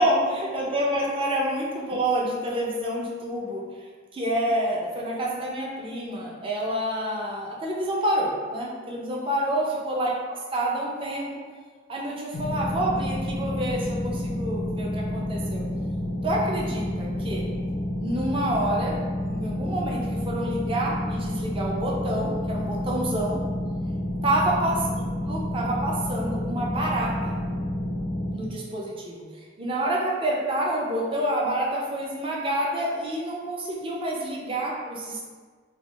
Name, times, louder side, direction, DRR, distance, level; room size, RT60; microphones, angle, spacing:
voice 1, 0.0-11.3 11.9-15.6 16.2-17.5 18.0-23.4 24.2-24.8 25.3-27.4 28.3-35.2, right 1 dB, 30° right, -3 dB, 0.5 m, -28 dB
sound 1, 12.3-28.3, left 1 dB, 70° left, 0.4 m, -29 dB
3.4 x 2.3 x 2.3 m, 1.5 s
head